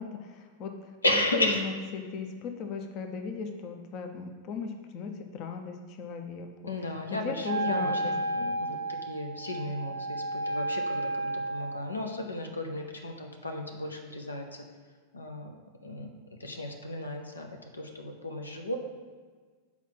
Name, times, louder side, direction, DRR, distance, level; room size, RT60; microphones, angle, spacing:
voice 1, 0.0-0.9 1.3-6.5 7.2-8.1, left 5 dB, 40° left, 5 dB, 0.7 m, -37 dB
voice 2, 1.0-1.7 6.7-8.8 9.1-14.6 15.1-15.5 15.8-16.1 16.4-18.8, left 1 dB, 80° left, 3 dB, 0.7 m, -34 dB
Wind instrument woodwind instrument, 7.4-12.0, right 1 dB, 75° right, 0.4 m, -32 dB
5.8 x 4.5 x 5.9 m, 1.5 s
figure-of-eight pair, 90°, 0 cm